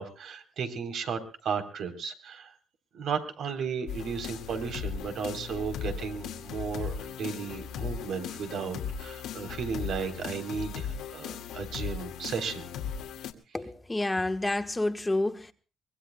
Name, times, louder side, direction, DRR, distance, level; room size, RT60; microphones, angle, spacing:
voice 1, 0.0-2.5 2.9-12.7, right 6 dB, 70° right, 3.5 m, -34 dB
sound 1, 3.9-13.3, left 7 dB, 90° left, 1.9 m, -37 dB
voice 2, 13.5-15.5, left 2 dB, 15° left, 1.4 m, -29 dB
24.0 x 21.0 x 2.2 m
cardioid pair, 90°, 0 cm